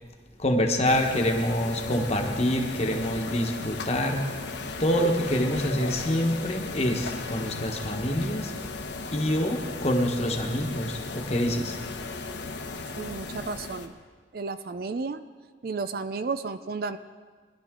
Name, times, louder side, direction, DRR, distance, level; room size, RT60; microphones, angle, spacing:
voice 1, 0.4-4.2 4.8-8.5 9.1-11.8, equal, 35° left, 2 dB, 1.2 m, -26 dB
sound 1, 0.8-13.9, left 3 dB, 70° left, 1.1 m, -36 dB
voice 2, 13.0-13.9 14.3-15.2 15.6-17.0, right 4 dB, 50° right, 11 dB, 0.4 m, -32 dB
20.0 x 11.0 x 3.8 m, 1.5 s
head